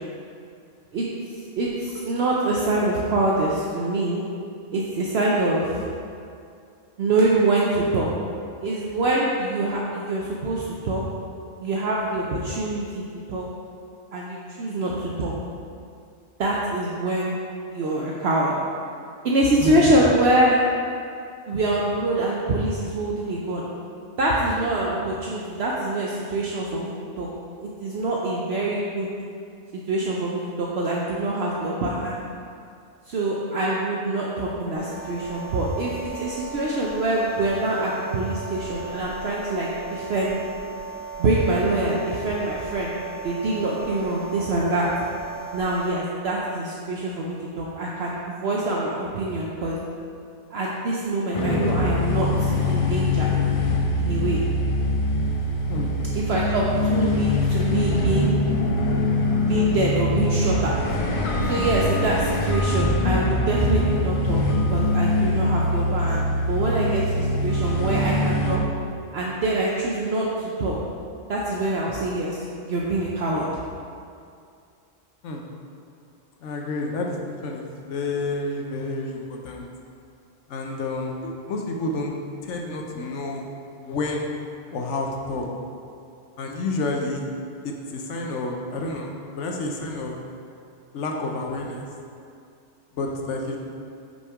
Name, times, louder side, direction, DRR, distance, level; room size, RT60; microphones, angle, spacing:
voice 1, 0.9-4.2 4.7-5.9 7.0-8.1 8.6-11.0 11.6-13.0 13.3-13.4 14.1-15.3 16.4-17.3 17.7-18.5 19.2-20.6 21.5-23.6 24.2-26.9 27.2-27.3 27.6-29.1 29.9-32.1 33.1-40.4 41.2-43.0 43.2-44.9 45.5-49.8 50.5-53.3 54.0-54.4 56.1-58.4 59.4-60.8 61.4-64.4 64.7-68.6 69.1-70.7 71.3-72.4 72.6-73.5, right 2 dB, 60° right, -4 dB, 0.8 m, -25 dB
sound 1, 34.7-45.9, right 4 dB, 10° left, 0.9 m, -37 dB
sound 2, 51.3-68.6, left 1 dB, 45° left, 0.4 m, -23 dB
voice 2, 76.4-79.7 80.5-82.1 82.4-83.4 83.8-84.3 84.7-85.5 86.4-87.3 87.6-90.2 90.9-91.9 92.9-93.6, left 2 dB, 70° left, 1 dB, 1.0 m, -29 dB
5.8 x 4.2 x 4.7 m, 2.4 s
omnidirectional pair, 1.3 m